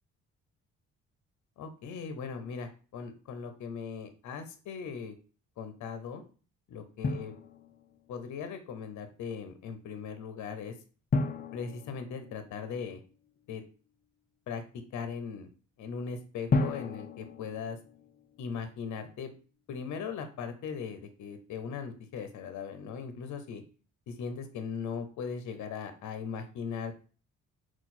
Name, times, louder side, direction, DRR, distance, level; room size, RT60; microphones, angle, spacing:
voice 1, 1.6-5.2 5.6-6.2 6.7-7.3 8.1-10.7 11.5-13.0 13.5-13.6 14.5-14.6 14.9-15.5 15.8-17.8 18.4-19.3 19.7-23.6 24.1-27.0, left 6 dB, 70° left, 8 dB, 0.7 m, -39 dB
Drum, 7.0-8.1 11.1-13.0 16.5-18.5, left 3 dB, 30° left, 0.4 m, -33 dB
3.9 x 2.4 x 4.2 m, 0.38 s
cardioid pair, 90°, 30 cm